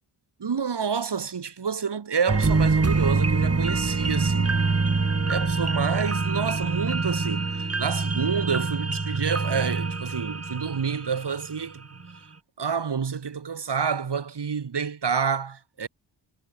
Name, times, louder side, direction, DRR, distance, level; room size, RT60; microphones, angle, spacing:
voice 1, 0.4-4.5 5.3-12.0 12.6-15.9, right 6 dB, 55° right, 6.2 m, -29 dB
sound 1, 2.3-11.6 12.0-12.1, right 4 dB, 30° right, 3.3 m, -25 dB
cardioid pair, 65°, 48 cm